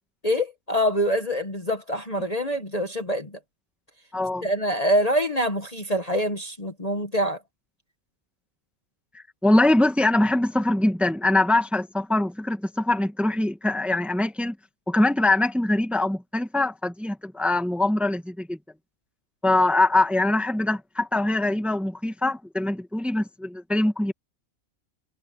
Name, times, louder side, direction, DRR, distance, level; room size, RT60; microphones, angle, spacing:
voice 1, 0.2-3.4 4.4-7.4, equal, 30° left, 1.4 m, -25 dB
voice 2, 4.1-4.5 9.1-14.6 14.9-18.6 19.4-24.1, left 2 dB, ahead, 1.5 m, -23 dB
omnidirectional pair, 1.5 m